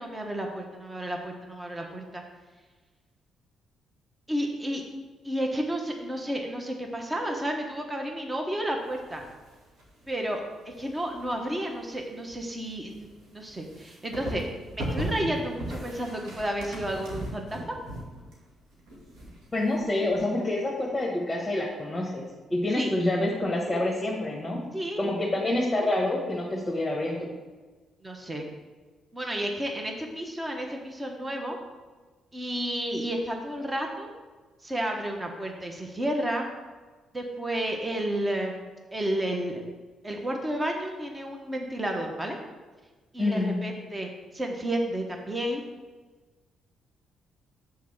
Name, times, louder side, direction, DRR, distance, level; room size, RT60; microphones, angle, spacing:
voice 1, 0.0-2.2 4.3-4.8 5.2-9.2 10.1-14.5 14.7-17.7 22.8-22.9 23.7-23.8 24.7-25.0 28.0-28.4 29.1-31.6 32.3-34.1 34.6-36.5 37.1-39.6 40.0-42.4 43.1-45.6, right 1 dB, 20° right, 2 dB, 1.2 m, -31 dB
sound 1, 8.8-10.2 10.5-20.2, right 1 dB, 90° right, 2.2 m, -38 dB
voice 2, 19.5-22.2 22.5-24.7 25.0-27.3 43.2-43.6, left 1 dB, 15° left, -3 dB, 1.5 m, -27 dB
6.6 x 4.2 x 6.5 m, 1.3 s
cardioid pair, 90°, 0 cm